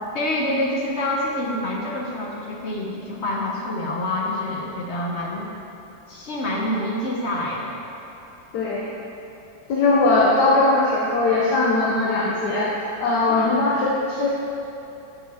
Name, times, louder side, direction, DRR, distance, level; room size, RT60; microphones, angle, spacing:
voice 1, 0.1-5.5 6.1-7.7 13.3-13.6, left 1 dB, 55° left, -2 dB, 0.9 m, -27 dB
voice 2, 8.5-8.9 9.7-14.3, left 2 dB, 80° left, -5 dB, 1.4 m, -20 dB
8.7 x 7.1 x 3.5 m, 2.9 s
omnidirectional pair, 1.7 m